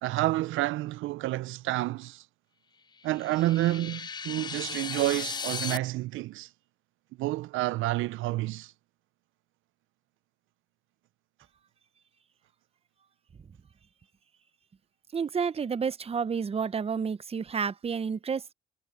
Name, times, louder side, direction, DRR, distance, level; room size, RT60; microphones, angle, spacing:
voice 1, 0.0-2.3 3.0-6.5 7.2-8.7, right 17 dB, 80° right, 0.4 m, -29 dB
sound 1, 3.0-5.8, left 5 dB, 20° left, 0.4 m, -36 dB
voice 2, 15.1-18.5, right 6 dB, 30° right, 0.7 m, -30 dB
cardioid pair, 90°, 20 cm